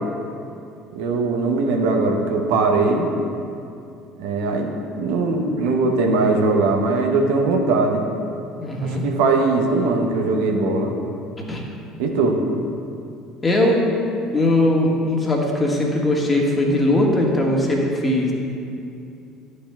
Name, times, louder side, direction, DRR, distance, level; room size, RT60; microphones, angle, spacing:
voice 1, 0.9-3.1 4.2-4.7 5.0-8.0 8.8-10.9 12.0-12.4, right 3 dB, 70° right, 2 dB, 0.8 m, -20 dB
voice 2, 8.6-9.0 11.5-11.6 13.4-13.8 14.3-18.3, left 1 dB, 25° left, -1 dB, 1.6 m, -19 dB
11.5 x 6.5 x 2.3 m, 2.6 s
hypercardioid pair, 65°, 0 cm